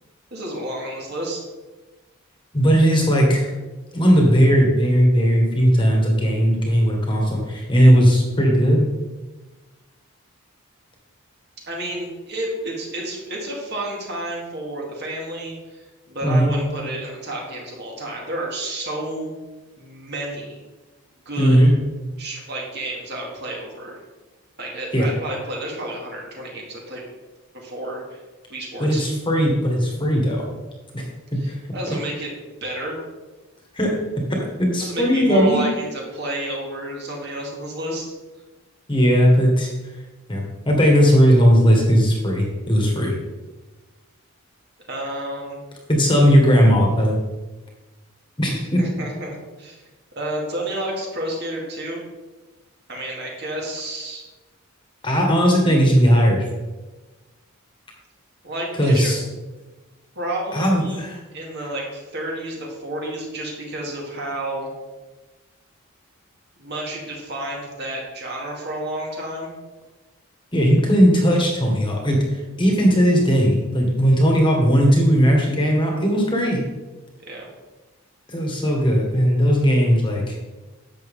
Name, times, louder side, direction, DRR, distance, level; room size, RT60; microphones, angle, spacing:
voice 1, 0.3-1.4 11.7-19.3 19.8-20.6 21.3-21.6 22.2-24.0 24.6-27.0 27.5-28.2 28.5-29.1 31.4-32.3 32.6-33.0 34.8-38.1 44.9-45.6 48.8-49.9 50.2-52.0 52.9-54.2 58.4-59.1 60.2-61.0 61.3-64.7 66.6-69.5 77.3-77.5, right 1 dB, 50° right, -2 dB, 2.4 m, -30 dB
voice 2, 2.5-3.5 3.9-8.9 16.2-16.5 21.4-21.7 24.9-25.1 28.8-30.5 30.9-31.0 31.3-31.6 33.7-34.0 34.3-35.6 38.9-39.7 40.3-43.1 45.9-47.2 48.4-48.8 55.0-56.4 58.7-59.2 60.5-61.2 70.5-76.6 78.3-80.3, equal, 20° left, 0 dB, 1.7 m, -17 dB
11.5 x 7.6 x 3.7 m, 1.2 s
head